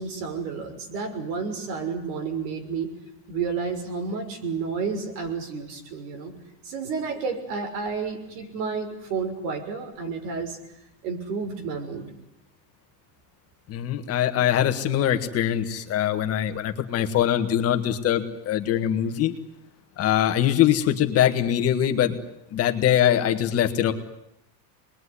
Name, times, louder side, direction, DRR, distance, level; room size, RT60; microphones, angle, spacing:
voice 1, 0.0-2.9 3.3-6.3 6.6-10.6 11.0-12.1, right 5 dB, 85° right, 5 dB, 6.4 m, -31 dB
voice 2, 13.7-19.3 20.0-22.2 22.5-23.9, left 10 dB, 30° left, 7 dB, 1.8 m, -22 dB
28.0 x 21.5 x 9.9 m, 0.81 s
cardioid pair, 175°, 47 cm